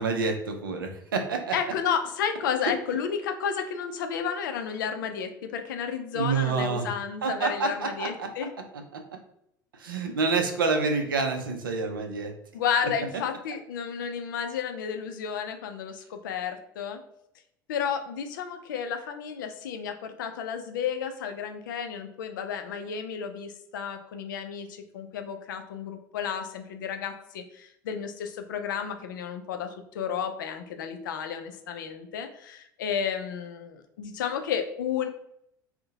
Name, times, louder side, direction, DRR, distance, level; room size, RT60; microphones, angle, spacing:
voice 1, 0.0-1.5 6.1-6.9 7.2-8.3 9.8-12.3, right 4 dB, 75° right, 4 dB, 0.5 m, -27 dB
voice 2, 1.5-8.5 12.5-17.0 17.7-35.1, left 7 dB, 65° left, 7 dB, 0.4 m, -32 dB
2.6 x 2.1 x 2.7 m, 0.75 s
figure-of-eight pair, 70°, 11 cm